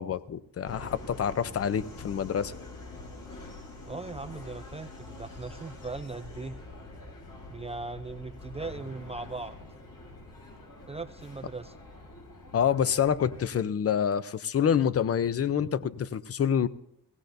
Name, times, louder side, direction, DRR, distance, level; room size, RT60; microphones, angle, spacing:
voice 1, 0.0-2.5 12.5-16.7, left 8 dB, 45° left, 16 dB, 0.6 m, -27 dB
Subway metro underground, 0.6-13.5, left 2 dB, 70° left, 3.7 m, -45 dB
voice 2, 3.9-6.6 7.5-9.6 10.9-11.8, right 3 dB, 20° right, 8 dB, 0.4 m, -39 dB
17.0 x 16.5 x 2.6 m, 0.78 s
cardioid pair, 90°, 35 cm